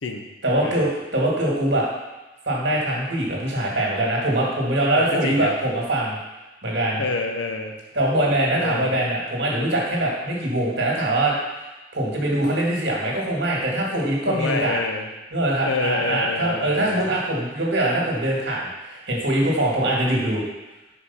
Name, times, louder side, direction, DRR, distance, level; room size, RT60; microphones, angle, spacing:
voice 1, 0.4-1.9 2.5-6.2 6.6-7.0 7.9-11.4 11.9-14.8 15.3-20.4, right 1 dB, 60° right, -3 dB, 1.8 m, -23 dB
voice 2, 4.9-5.5 7.0-7.8 8.5-8.9 14.3-15.1 15.6-17.1, left 3 dB, 85° left, 4 dB, 0.8 m, -28 dB
5.0 x 5.0 x 5.6 m, 1.1 s
head